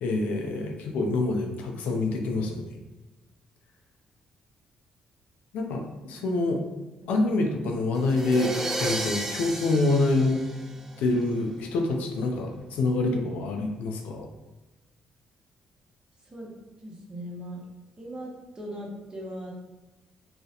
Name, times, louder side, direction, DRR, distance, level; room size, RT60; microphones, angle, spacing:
voice 1, 0.0-2.8 5.5-6.6 7.1-8.5 8.8-10.4 11.0-14.3, left 2 dB, 85° left, 2 dB, 0.3 m, -26 dB
sound 1, 8.0-11.2, right 1 dB, 15° right, 0.4 m, -33 dB
voice 2, 16.8-17.6 18.0-19.5, equal, 35° right, -2 dB, 0.7 m, -39 dB
2.3 x 2.0 x 2.7 m, 1.1 s
supercardioid pair, 65°, 2 cm